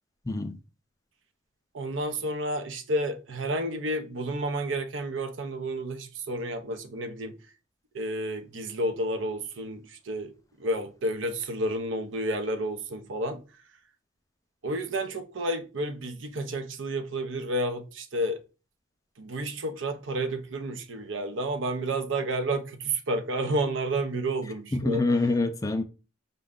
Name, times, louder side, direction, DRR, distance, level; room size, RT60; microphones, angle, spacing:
voice 1, 0.3-0.6 24.7-25.8, left 2 dB, 20° left, 0.3 m, -26 dB
voice 2, 1.7-7.3 7.9-10.3 10.6-13.4 14.6-18.4 19.2-25.0, right 1 dB, 85° right, 0.6 m, -30 dB
5.1 x 2.2 x 3.6 m
head